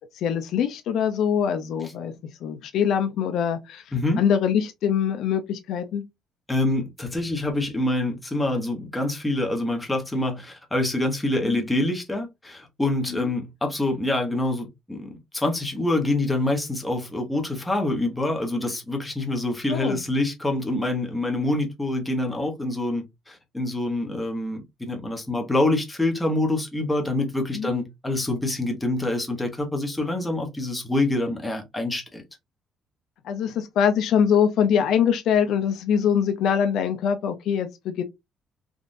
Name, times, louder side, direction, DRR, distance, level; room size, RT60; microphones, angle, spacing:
voice 1, 0.2-2.1 2.4-3.8 4.2-6.0 11.4-11.6 13.1-13.3 19.7-20.0 27.5-27.7 33.2-38.0, left 8 dB, 70° left, 0.5 m, -23 dB
voice 2, 3.9-4.2 6.5-32.2, left 2 dB, 10° left, 0.9 m, -26 dB
3.6 x 2.5 x 2.6 m
cardioid pair, 135°, 0 cm